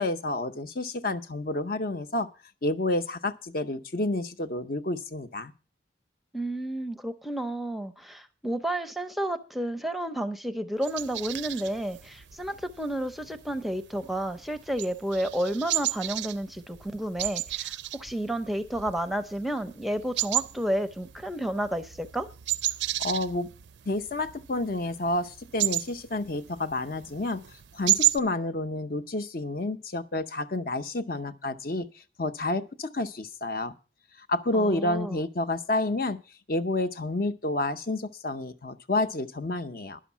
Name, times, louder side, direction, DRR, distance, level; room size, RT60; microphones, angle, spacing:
voice 1, 0.0-2.3 2.6-5.5 23.0-23.5 23.9-27.4 27.7-33.7 34.2-36.2 36.5-40.0, left 2 dB, 50° left, 11 dB, 0.7 m, -29 dB
voice 2, 6.3-22.3 34.5-35.2, right 1 dB, ahead, 10 dB, 0.6 m, -31 dB
sound 1, 10.8-28.2, right 14 dB, 70° right, 0.5 m, -33 dB
11.0 x 6.5 x 7.1 m, 0.35 s
head